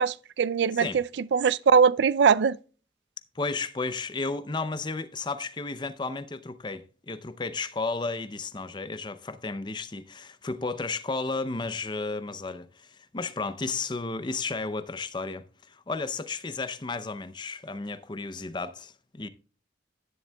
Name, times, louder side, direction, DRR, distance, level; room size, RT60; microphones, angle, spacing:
voice 1, 0.0-2.6, right 6 dB, 70° right, 0.4 m, -22 dB
voice 2, 3.3-19.3, left 3 dB, 25° left, 0.5 m, -33 dB
11.0 x 10.0 x 2.3 m
head